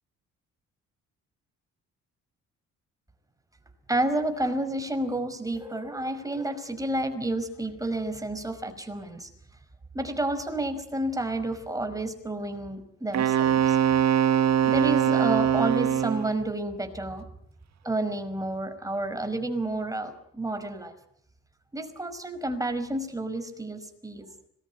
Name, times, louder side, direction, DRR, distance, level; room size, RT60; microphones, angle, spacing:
voice 1, 3.9-9.3 9.9-13.8 14.6-17.2 17.8-20.9 21.7-24.3, right 1 dB, 10° right, 8 dB, 5.2 m, -30 dB
Wind instrument woodwind instrument, 13.1-16.3, right 9 dB, 60° right, 1.9 m, -22 dB
26.0 x 20.5 x 9.4 m, 0.69 s
cardioid pair, 90°, 30 cm